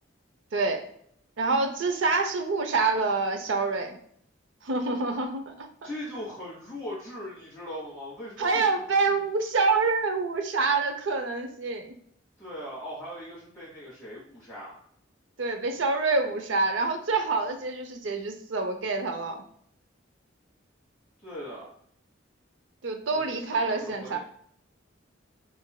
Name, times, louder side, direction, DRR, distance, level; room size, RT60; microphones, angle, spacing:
voice 1, 0.5-0.8 1.4-4.0 4.6-5.7 8.4-11.9 15.4-19.4 22.8-24.2, right 3 dB, 75° right, 5 dB, 0.6 m, -26 dB
voice 2, 5.8-8.6 12.4-14.7 21.2-21.7 23.1-24.2, left 1 dB, 10° left, -11 dB, 1.7 m, -39 dB
7.1 x 2.5 x 2.2 m, 0.66 s
head